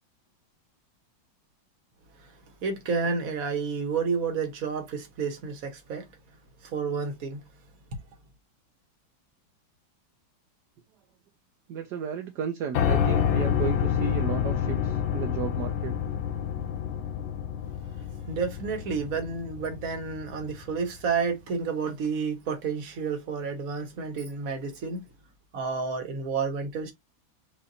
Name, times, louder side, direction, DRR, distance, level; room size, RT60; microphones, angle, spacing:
voice 1, 2.6-6.1 6.6-7.5 18.3-25.0 25.5-26.9, right 5 dB, 50° right, 1.5 m, -30 dB
voice 2, 11.7-16.0, right 7 dB, 65° right, 1.2 m, -34 dB
Piano, 12.7-20.8, left 8 dB, 80° left, 1.5 m, -28 dB
6.6 x 2.9 x 2.7 m
omnidirectional pair, 2.2 m